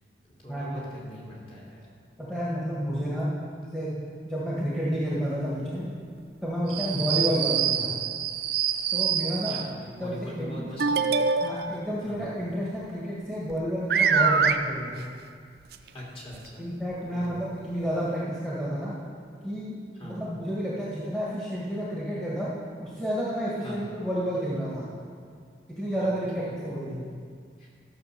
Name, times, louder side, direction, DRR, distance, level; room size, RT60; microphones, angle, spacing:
voice 1, 0.3-1.9 6.9-7.2 7.7-7.8 9.5-11.0 12.1-12.2 15.9-16.6 17.1-17.4 20.0-20.2 23.6-23.8 26.0-26.6 27.6-27.7, equal, 30° left, -5 dB, 2.9 m, -42 dB
voice 2, 2.2-3.3 3.7-3.9 4.3-5.9 6.4-8.0 8.9-9.6 10.0-10.7 11.4-15.1 16.6-19.0 19.4-19.8 20.0-22.5 22.8-25.0 25.8-27.1, equal, 5° left, -8 dB, 1.7 m, -30 dB
sound 1, 6.7-9.7 10.8-11.8 13.5-13.6 13.9-14.6 15.7-15.8 16.3-16.4 17.2-17.3, right 6 dB, 60° right, 0.5 m, -25 dB
13.5 x 6.3 x 6.8 m, 2.1 s
head